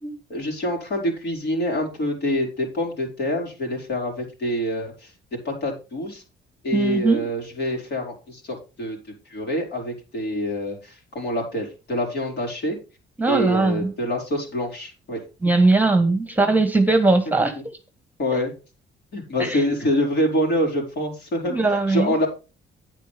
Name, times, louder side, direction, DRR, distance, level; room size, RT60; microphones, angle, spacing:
voice 1, 0.3-5.1 5.4-6.2 6.6-9.0 9.3-12.8 13.3-15.2 17.4-17.6 18.2-18.5 19.1-22.3, equal, 60° left, 0 dB, 5.0 m, -26 dB
voice 2, 6.7-7.3 13.2-13.9 15.4-17.5 19.4-19.6 21.4-22.1, right 3 dB, 10° right, 9 dB, 1.4 m, -20 dB
9.7 x 8.6 x 3.5 m, 0.32 s
cardioid pair, 90°, 20 cm